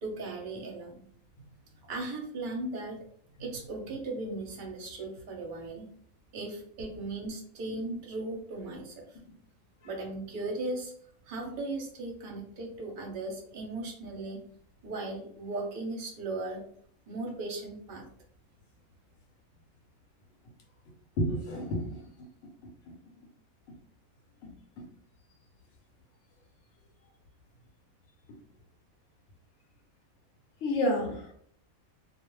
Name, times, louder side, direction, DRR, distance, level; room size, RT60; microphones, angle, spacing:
voice 1, 0.0-1.1 1.9-3.0 3.4-5.8 6.3-9.2 9.8-10.9 11.3-14.4 14.8-16.6 17.1-18.1, right 2 dB, 50° right, 0 dB, 0.6 m, -37 dB
voice 2, 21.2-21.9 24.4-24.5 30.6-31.3, left 1 dB, 65° left, 2 dB, 0.8 m, -29 dB
2.4 x 2.0 x 3.0 m, 0.62 s
omnidirectional pair, 1.5 m